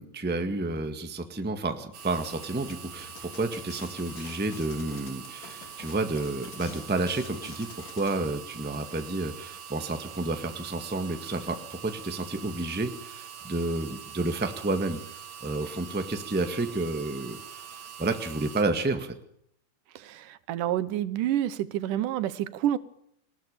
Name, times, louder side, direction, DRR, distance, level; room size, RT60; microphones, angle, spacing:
voice 1, 0.0-17.6 18.0-19.1, right 2 dB, 5° right, 7 dB, 0.9 m, -30 dB
sound 1, 1.9-18.6, right 8 dB, 65° right, 3.3 m, -44 dB
sound 2, 2.2-8.2, left 5 dB, 80° left, 4.3 m, -48 dB
voice 2, 20.0-22.8, right 12 dB, 90° right, 15 dB, 2.6 m, -28 dB
20.0 x 19.5 x 6.8 m, 0.70 s
omnidirectional pair, 3.6 m